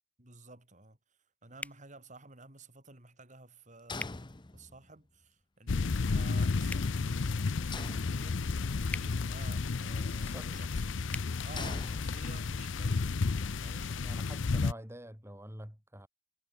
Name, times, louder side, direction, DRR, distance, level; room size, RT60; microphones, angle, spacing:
voice 1, 0.2-11.1 11.4-13.1 13.6-14.5, right 3 dB, 40° right, 5.8 m, -54 dB
sound 1, 1.6-1.8 4.0-4.2 6.6-6.9 8.9-9.1 11.1-11.3, left 2 dB, 10° left, 1.1 m, -40 dB
sound 2, 3.9-5.0 7.7-8.7 11.6-12.7, left 3 dB, 25° left, 0.9 m, -43 dB
sound 3, 5.7-14.7, left 4 dB, 90° left, 0.6 m, -32 dB
voice 2, 10.0-10.6 14.0-16.1, right 1 dB, 15° right, 4.9 m, -48 dB
head